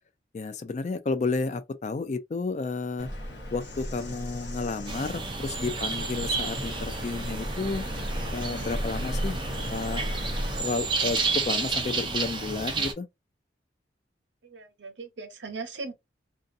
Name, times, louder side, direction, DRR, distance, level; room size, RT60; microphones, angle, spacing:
voice 1, 0.3-3.1 3.5-7.9 8.3-9.4 9.7-10.0 10.6-13.1, left 4 dB, 40° left, 0.3 m, -31 dB
Bird vocalization bird call bird song, 3.0-10.6, equal, 75° left, 0.9 m, -35 dB
sound 1, 4.9-12.9, right 4 dB, 25° right, 0.4 m, -31 dB
voice 2, 14.4-15.9, right 3 dB, 85° right, 0.7 m, -38 dB
2.6 x 2.2 x 2.5 m
head